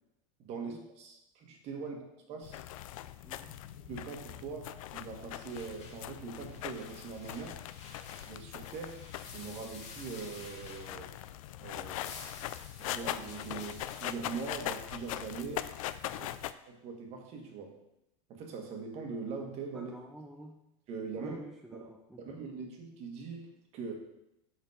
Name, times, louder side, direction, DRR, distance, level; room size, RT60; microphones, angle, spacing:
voice 1, 0.4-2.6 3.8-7.6 8.2-9.0 9.3-11.1 11.6-12.0 12.8-15.7 16.2-16.3 16.6-17.8 18.3-19.9 20.9-21.4 21.7-21.9 22.2-23.9, right 5 dB, 40° right, 2 dB, 1.6 m, -42 dB
sound 1, 2.4-16.5, left 13 dB, 80° left, 0.5 m, -41 dB
voice 2, 3.2-3.6 16.1-16.4 19.7-20.6 21.2-22.4, right 1 dB, ahead, 0 dB, 0.5 m, -49 dB
sound 2, 5.0-11.4 11.7-16.4, left 5 dB, 40° left, 1.4 m, -52 dB
7.2 x 5.8 x 5.0 m, 0.85 s
supercardioid pair, 150°, 17 cm